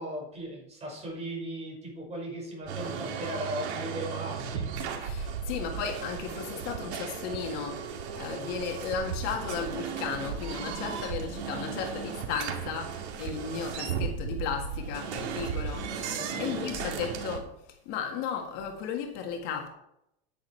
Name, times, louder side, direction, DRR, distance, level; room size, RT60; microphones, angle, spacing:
voice 1, 0.0-4.6 16.0-17.1, right 1 dB, 20° right, 5.3 m, -38 dB
sound 1, 2.7-17.4, right 6 dB, 80° right, 2.4 m, -35 dB
voice 2, 5.0-19.7, left 6 dB, 50° left, 1.9 m, -35 dB
10.0 x 9.4 x 4.5 m
supercardioid pair, 150°, 33 cm